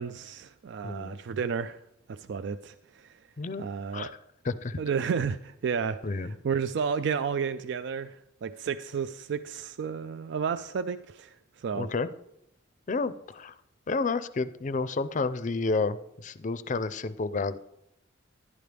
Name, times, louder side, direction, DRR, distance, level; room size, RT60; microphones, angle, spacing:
voice 1, 0.0-1.8 2.1-3.1 3.6-4.1 4.8-8.2 8.4-11.9, right 6 dB, 65° right, 0.4 m, -32 dB
voice 2, 0.8-1.2 3.4-3.7 3.9-4.2 4.4-4.8 6.0-6.3 11.7-12.1 12.9-13.5 13.9-17.6, left 3 dB, 40° left, 0.5 m, -30 dB
11.0 x 11.0 x 3.4 m
head